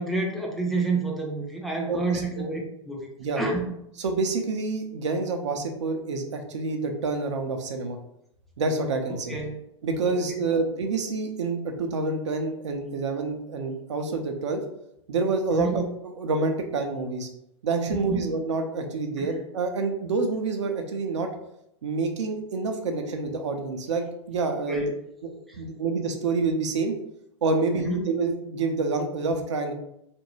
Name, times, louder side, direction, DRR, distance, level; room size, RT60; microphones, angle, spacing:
voice 1, 0.0-2.6 2.9-3.1 3.4-3.7 9.1-9.6 10.1-10.2 15.5-15.8 17.9-18.2 19.2-19.3 24.7-24.8 25.5-25.6 27.7-28.0, right 3 dB, ahead, -1 dB, 0.4 m, -29 dB
voice 2, 1.9-2.5 3.2-3.4 4.0-8.0 8.6-9.4 9.8-14.6 15.1-15.8 16.2-17.3 17.6-21.3 21.8-24.9 25.2-26.9 27.4-29.7, right 3 dB, 65° right, 4 dB, 0.5 m, -27 dB
2.5 x 2.2 x 3.0 m, 0.77 s
figure-of-eight pair, 95°, 16 cm